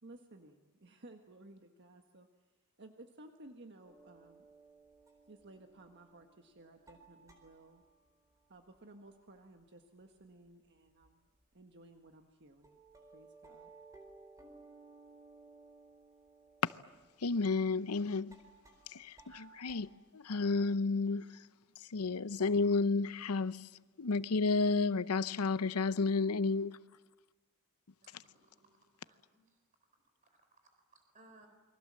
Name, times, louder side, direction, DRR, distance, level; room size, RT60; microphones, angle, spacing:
voice 1, 0.0-2.3 2.8-4.5 5.3-7.8 8.5-11.3 11.5-12.8 13.1-13.7, right 2 dB, 50° right, 1.5 m, -56 dB
sound 1, 3.8-9.9 10.1-11.1 11.4-11.5 12.1-12.2 12.6-19.8, right 3 dB, 15° right, 4.3 m, -60 dB
voice 2, 17.2-18.4 18.9-21.3 21.9-23.7 24.0-26.8, left 4 dB, 90° left, 0.7 m, -31 dB
voice 3, 28.0-31.5, right 2 dB, 35° right, 4.1 m, -65 dB
29.0 x 23.5 x 7.6 m
head